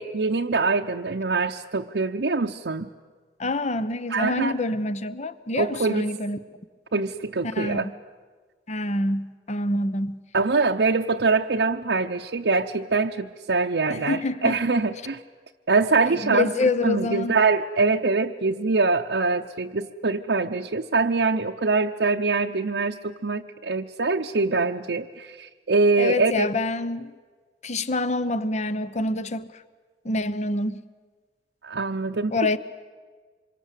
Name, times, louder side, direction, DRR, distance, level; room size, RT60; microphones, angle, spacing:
voice 1, 0.0-2.9 4.1-4.6 5.6-6.1 6.9-7.9 10.3-15.2 15.7-16.5 16.8-26.5 31.6-32.3, right 3 dB, 75° right, 1 dB, 0.8 m, -24 dB
voice 2, 3.4-6.4 7.4-7.9 8.7-10.2 13.9-14.6 16.1-17.4 26.0-27.1 27.6-29.5 30.0-30.8 32.3-32.6, left 2 dB, 40° left, 14 dB, 0.9 m, -26 dB
26.5 x 23.5 x 8.3 m, 1.5 s
head